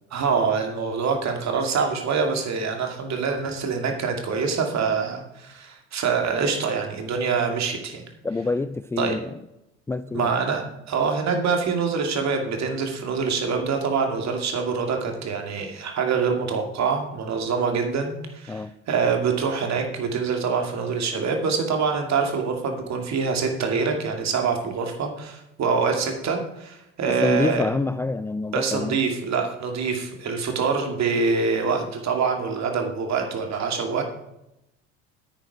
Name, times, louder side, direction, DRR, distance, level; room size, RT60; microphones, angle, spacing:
voice 1, 0.1-8.0 9.0-9.1 10.1-27.7 28.5-34.0, right 5 dB, 45° right, 3 dB, 2.6 m, -25 dB
voice 2, 8.2-9.3 9.9-10.4 18.5-18.7 27.2-29.0, left 3 dB, 10° left, 11 dB, 0.3 m, -26 dB
9.6 x 9.0 x 5.0 m, 0.85 s
hypercardioid pair, 65°, 37 cm